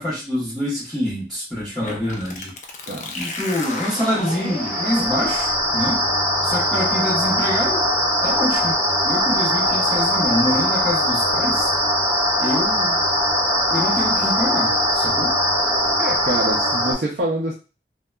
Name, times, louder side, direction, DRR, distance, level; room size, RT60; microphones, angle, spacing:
voice 1, 0.0-2.5 3.1-6.0 6.4-7.8 8.2-8.8 9.0-11.7 12.4-13.0 13.7-15.4, left 1 dB, ahead, -13 dB, 1.1 m, -25 dB
sound 1, 1.8-9.3, left 2 dB, 45° left, 0.4 m, -35 dB
voice 2, 2.9-3.2 16.0-17.5, right 1 dB, 55° right, -1 dB, 0.4 m, -25 dB
sound 2, 4.4-16.9, equal, 25° right, 1.1 m, -21 dB
2.8 x 2.2 x 2.2 m, 0.34 s
head